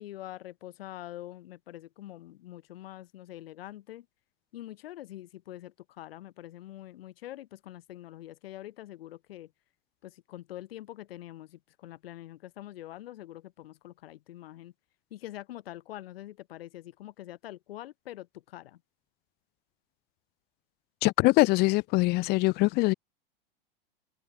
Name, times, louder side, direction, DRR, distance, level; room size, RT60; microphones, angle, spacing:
voice 1, 0.0-4.1 4.5-9.5 10.0-14.7 15.1-18.8, left 14 dB, 75° left, 1.5 m, -45 dB
voice 2, 21.0-22.9, left 23 dB, 35° left, 0.4 m, -23 dB
open air
hypercardioid pair, 105°, 30 cm